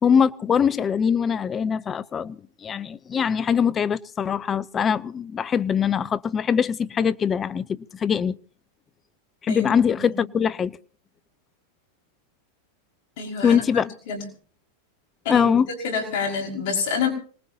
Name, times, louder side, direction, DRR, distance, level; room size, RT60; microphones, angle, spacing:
voice 1, 0.0-8.4 9.4-10.8 13.4-13.9 15.3-15.7, left 7 dB, 25° left, 0.7 m, -22 dB
voice 2, 13.2-14.3 15.2-15.5 15.8-17.1, left 5 dB, 60° left, 5.6 m, -28 dB
25.5 x 19.5 x 2.9 m
hypercardioid pair, 120°, 0 cm